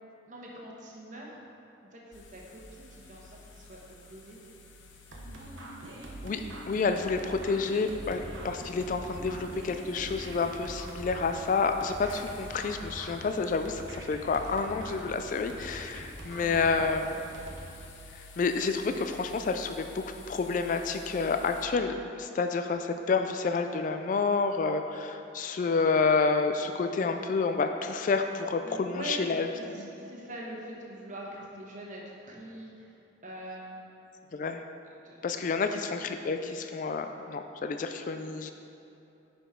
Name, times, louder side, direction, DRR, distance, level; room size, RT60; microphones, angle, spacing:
voice 1, 0.2-1.4 1.8-4.4 16.0-16.1 16.4-16.7 16.9-17.4 28.6-33.9 35.0-35.8, right 1 dB, 40° right, -3 dB, 1.2 m, -44 dB
sound 1, 2.1-21.7, left 2 dB, 85° left, 0.7 m, -51 dB
sound 2, 5.1-17.6, right 1 dB, 85° right, 1.0 m, -43 dB
voice 2, 6.7-17.0 18.4-29.5 29.8-29.9 34.3-34.6 35.2-38.5, left 4 dB, 45° left, 7 dB, 0.3 m, -29 dB
10.0 x 5.1 x 3.7 m, 2.8 s
head